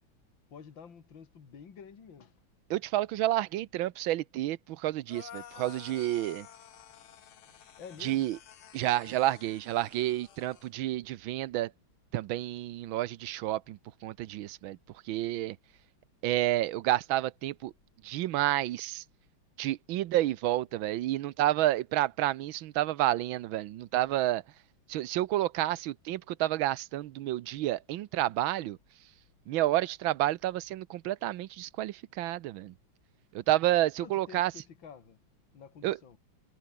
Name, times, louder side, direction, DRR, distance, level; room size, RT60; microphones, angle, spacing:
voice 1, 0.5-2.3 7.8-8.3 34.0-35.2 35.5-36.2, left 6 dB, 65° left, 3.0 m, -49 dB
voice 2, 2.7-6.5 8.0-8.4 8.7-11.7 12.1-14.8 15.1-15.6 16.2-17.7 18.0-19.0 19.6-24.4 24.9-28.8 29.5-32.7 33.3-34.5 35.8-36.0, right 14 dB, 75° right, 1.5 m, -30 dB
sound 1, 5.1-10.7, left 9 dB, 85° left, 2.3 m, -51 dB
omnidirectional pair, 2.2 m